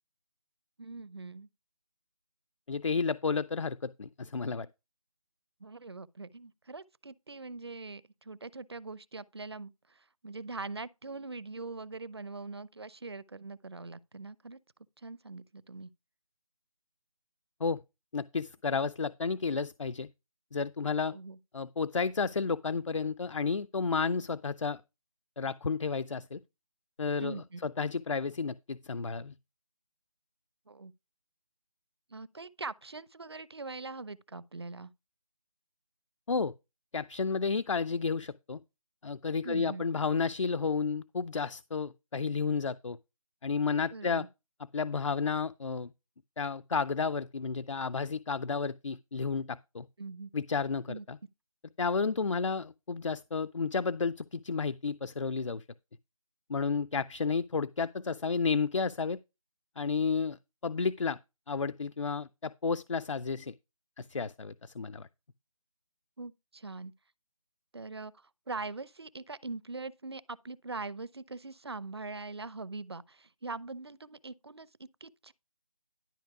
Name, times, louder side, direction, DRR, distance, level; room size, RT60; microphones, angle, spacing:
voice 1, 0.8-1.5 5.6-14.6 15.0-15.9 21.0-21.4 27.2-27.6 30.7-30.9 32.1-34.9 39.4-39.8 43.9-44.3 50.0-50.3 50.9-51.1 66.2-66.9 67.7-75.3, right 3 dB, 45° right, 0.6 m, -42 dB
voice 2, 2.7-4.7 17.6-17.8 18.1-20.1 20.5-21.1 21.5-24.8 25.4-26.4 27.0-29.3 36.3-36.5 36.9-38.6 39.0-43.0 43.4-44.2 44.7-45.9 46.4-49.9 50.3-51.2 51.8-55.6 56.5-59.2 59.8-60.4 60.6-61.2 61.5-63.5 64.0-65.1, left 5 dB, 55° left, 0.5 m, -32 dB
12.0 x 5.2 x 4.7 m
figure-of-eight pair, 180°, 18 cm